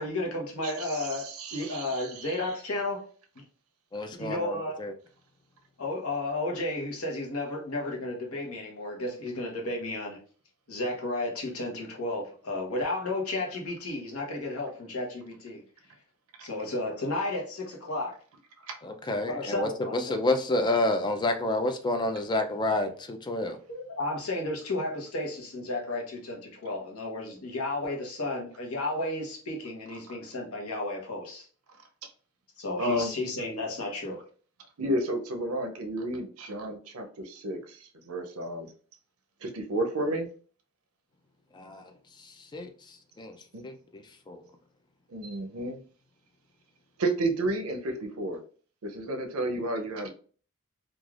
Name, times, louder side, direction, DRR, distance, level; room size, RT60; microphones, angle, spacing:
voice 1, 0.0-1.2 1.5-3.0 3.4-3.5 4.2-4.8 5.8-10.2 10.7-15.6 16.4-18.1 19.3-20.2 23.7-31.5 32.6-34.2, left 2 dB, 80° left, 0 dB, 0.9 m, -33 dB
voice 2, 0.6-2.5 16.4-16.5 18.6-18.8 32.8-33.2 34.8-38.7 39.4-40.3 43.5-43.7 45.1-45.8 47.0-48.4 48.8-50.1, right 1 dB, 80° right, 5 dB, 0.5 m, -32 dB
voice 3, 3.9-4.9 18.8-23.6 41.5-41.9 42.2-43.4 43.6-44.4, left 2 dB, 20° left, 7 dB, 0.3 m, -29 dB
3.2 x 2.4 x 2.3 m, 0.42 s
head